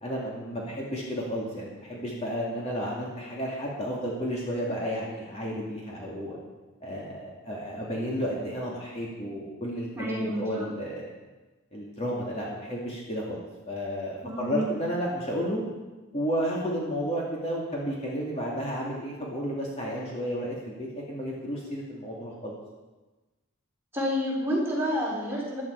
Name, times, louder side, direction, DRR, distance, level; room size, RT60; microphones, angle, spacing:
voice 1, 0.0-6.4 6.8-11.1 11.7-13.4 13.7-15.6 16.1-22.5, equal, 30° left, -4 dB, 2.6 m, -32 dB
voice 2, 10.0-10.7 14.2-14.7 23.9-25.6, equal, 10° right, -5 dB, 4.3 m, -29 dB
16.0 x 11.0 x 4.8 m, 1.2 s
head